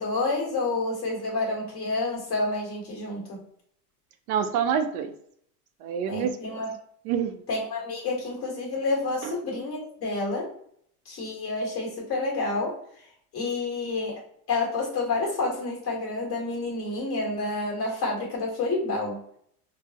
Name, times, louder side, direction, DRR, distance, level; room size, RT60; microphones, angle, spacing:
voice 1, 0.0-3.4 6.1-6.7 7.5-10.5 11.0-12.8 13.3-14.2 14.5-19.2, left 3 dB, 30° left, -2 dB, 1.4 m, -29 dB
voice 2, 4.3-5.1 5.8-6.6 7.0-7.4 9.2-9.4, right 7 dB, 70° right, 7 dB, 0.6 m, -27 dB
3.8 x 2.0 x 2.8 m, 0.66 s
supercardioid pair, 150°, 45 cm